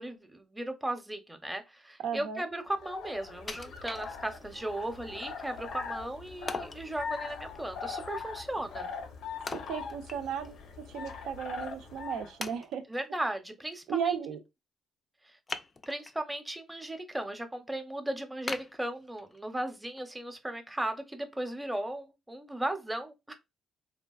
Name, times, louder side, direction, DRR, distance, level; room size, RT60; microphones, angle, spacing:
voice 1, 0.0-8.9 12.9-14.2 15.2-15.4 15.9-23.4, right 1 dB, 10° right, 0.6 m, -36 dB
voice 2, 2.0-2.4 9.5-12.8 13.9-14.4, right 7 dB, 85° right, 0.5 m, -35 dB
sound 1, 2.6-12.4, left 5 dB, 80° left, 0.6 m, -42 dB
Wood, 3.5-4.6 5.1-5.2 6.5-6.9 9.5-10.6 10.9-11.0 11.7-11.8 12.4-13.1 15.5-16.2 16.7-17.2 17.6-17.7 18.5-19.5 20.0-20.1, left 3 dB, 30° left, 0.3 m, -41 dB
3.3 x 2.4 x 2.3 m
cardioid pair, 90°, 0 cm